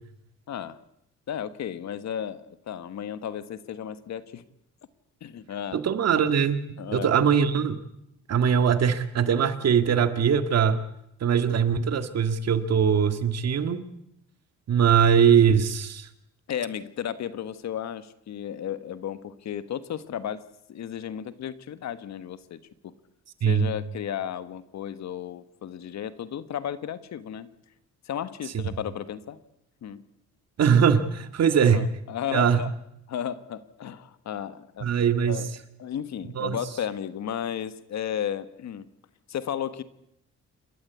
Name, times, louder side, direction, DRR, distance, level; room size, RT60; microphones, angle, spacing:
voice 1, 0.5-0.8 1.3-4.4 5.2-5.8 6.8-7.1 16.5-20.4 20.7-22.9 23.4-27.5 28.0-29.4 29.8-30.0 31.6-32.7 33.1-35.0 35.3-38.9 39.3-39.8, left 9 dB, 65° left, 13 dB, 1.4 m, -34 dB
voice 2, 5.7-7.8 8.3-10.8 11.2-13.8 14.7-16.1 23.4-23.7 30.6-31.9 32.3-32.6 34.8-35.4 36.3-36.6, right 7 dB, 55° right, 9 dB, 2.0 m, -21 dB
28.0 x 13.0 x 8.2 m, 0.78 s
cardioid pair, 90°, 30 cm